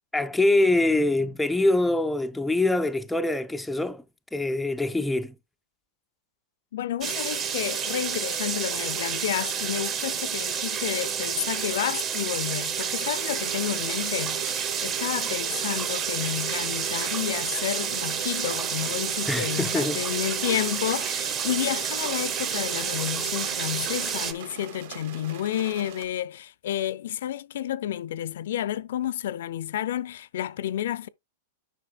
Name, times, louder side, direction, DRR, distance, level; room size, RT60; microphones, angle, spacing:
voice 1, 0.1-4.0 4.3-5.3 19.3-20.0, left 2 dB, 5° left, 0.3 m, -24 dB
voice 2, 6.7-31.1, left 11 dB, 70° left, 0.4 m, -31 dB
sound 1, 7.0-24.3, right 7 dB, 25° right, 0.7 m, -29 dB
sound 2, 12.8-26.1, right 9 dB, 55° right, 1.1 m, -42 dB
10.0 x 5.6 x 2.4 m
supercardioid pair, 160°, 0 cm